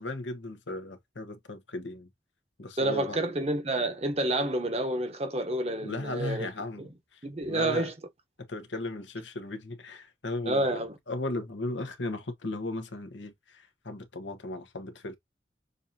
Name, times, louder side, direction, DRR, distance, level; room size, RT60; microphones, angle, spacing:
voice 1, 0.0-2.1 2.6-3.2 5.8-6.8 7.1-7.2 7.5-7.9 8.5-15.2, left 2 dB, 90° left, 1.2 m, -36 dB
voice 2, 2.8-6.5 6.8-6.9 7.2-7.9 10.5-10.9, right 1 dB, 35° right, 0.9 m, -29 dB
6.6 x 2.7 x 2.7 m
head